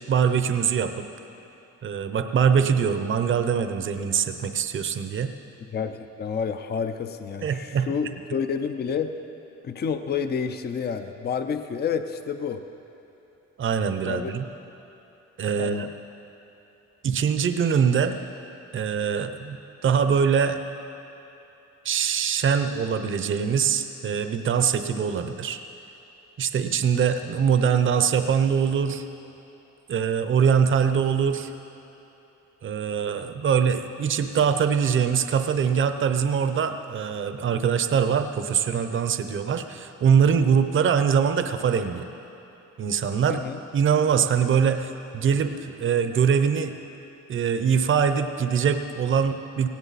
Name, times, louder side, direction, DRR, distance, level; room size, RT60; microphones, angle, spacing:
voice 1, 0.1-1.1 1.8-5.3 7.4-7.9 13.6-14.4 15.4-15.9 17.0-18.2 18.7-20.6 21.8-25.6 26.4-29.0 29.9-31.5 32.6-42.1 42.8-43.4 43.7-46.7 47.3-49.7, right 7 dB, 45° right, 8 dB, 0.8 m, -23 dB
voice 2, 5.7-9.2 9.6-12.6 14.0-14.3 15.6-15.9 43.3-43.6, left 6 dB, 35° left, 8 dB, 0.6 m, -29 dB
17.5 x 17.0 x 4.2 m, 3.0 s
cardioid pair, 135°, 29 cm